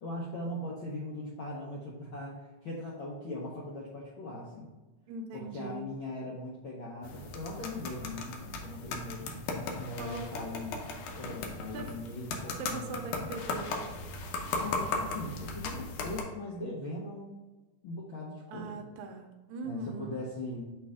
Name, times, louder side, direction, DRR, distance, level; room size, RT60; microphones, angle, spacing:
voice 1, 0.0-4.7 5.3-9.3 9.8-10.8 11.1-13.3 14.6-17.4 17.8-18.8 19.6-20.6, left 1 dB, 75° left, -4 dB, 1.1 m, -40 dB
voice 2, 5.1-6.0 10.0-10.2 11.7-11.9 12.6-13.9 18.5-20.1, right 3 dB, 85° right, 4 dB, 2.0 m, -41 dB
sound 1, 7.0-16.2, left 3 dB, 90° left, 2.3 m, -37 dB
6.1 x 3.3 x 4.8 m, 1.2 s
omnidirectional pair, 3.4 m